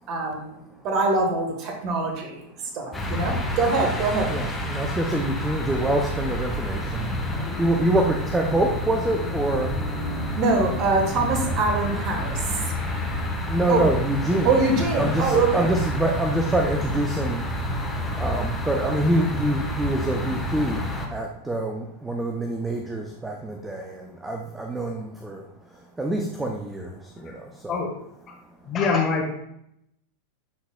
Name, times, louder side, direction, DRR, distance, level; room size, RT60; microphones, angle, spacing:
voice 1, 0.1-4.3 10.3-12.7 13.7-13.8 14.4-15.7, right 3 dB, 35° right, 3 dB, 1.3 m, -24 dB
sound 1, 2.9-21.1, left 1 dB, 10° left, 1.0 m, -29 dB
voice 2, 4.3-9.8 13.5-14.5 15.0-17.4 18.2-20.8 21.1-25.4 26.0-27.8, right 1 dB, 10° right, 2 dB, 0.6 m, -26 dB
voice 3, 28.6-29.3, left 4 dB, 30° left, -1 dB, 1.7 m, -24 dB
11.5 x 4.1 x 2.2 m, 0.77 s
figure-of-eight pair, 90°, 0 cm